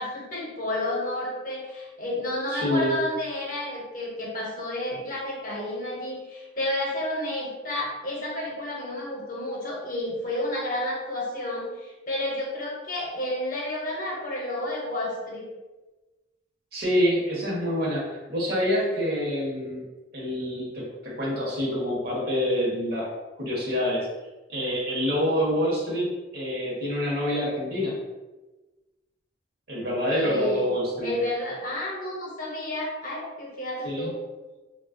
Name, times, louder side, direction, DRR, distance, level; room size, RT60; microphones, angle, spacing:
voice 1, 0.0-15.5 30.1-30.7 31.0-34.2, left 1 dB, 45° left, -3 dB, 0.7 m, -31 dB
voice 2, 2.5-2.9 16.7-19.9 20.1-23.1 23.3-24.1 24.5-28.0 29.7-31.1 33.8-34.1, equal, 55° right, -4 dB, 0.9 m, -26 dB
3.0 x 2.3 x 2.4 m, 1.2 s
head